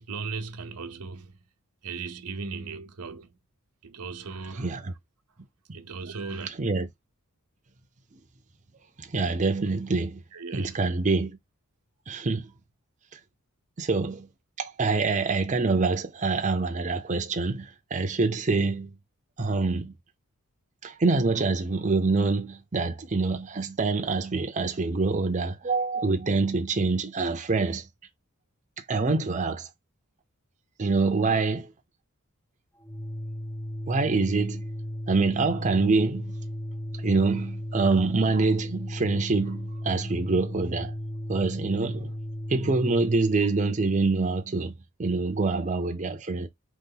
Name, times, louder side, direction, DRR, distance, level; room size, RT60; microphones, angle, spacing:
voice 1, 0.0-1.4 1.8-3.4 3.8-4.9 5.7-6.5 10.3-10.8, right 4 dB, 85° right, 0.8 m, -37 dB
voice 2, 4.6-4.9 6.6-6.9 9.0-10.2 10.5-11.4 12.1-12.5 13.8-14.3 14.6-18.9 19.4-19.9 20.8-27.9 28.9-29.7 30.8-31.7 33.9-34.6 35.1-36.2 37.0-40.9 41.3-42.1 42.5-44.7 45.0-46.5, right 3 dB, 35° right, 0.6 m, -25 dB
Organ, 32.8-43.1, equal, 10° left, 0.4 m, -35 dB
4.0 x 3.1 x 3.7 m
head